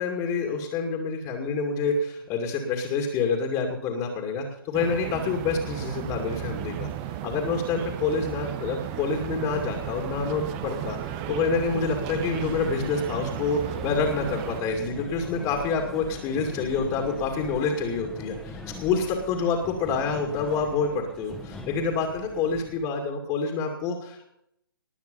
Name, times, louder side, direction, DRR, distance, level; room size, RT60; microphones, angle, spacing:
voice 1, 0.0-6.9 7.2-24.3, left 4 dB, 25° left, 1 dB, 2.4 m, -27 dB
sound 1, 4.7-14.6, right 12 dB, 25° right, 1.0 m, -35 dB
sound 2, 8.9-22.9, left 1 dB, ahead, 1.9 m, -42 dB
19.5 x 9.0 x 5.4 m, 0.76 s
figure-of-eight pair, 135°, 12 cm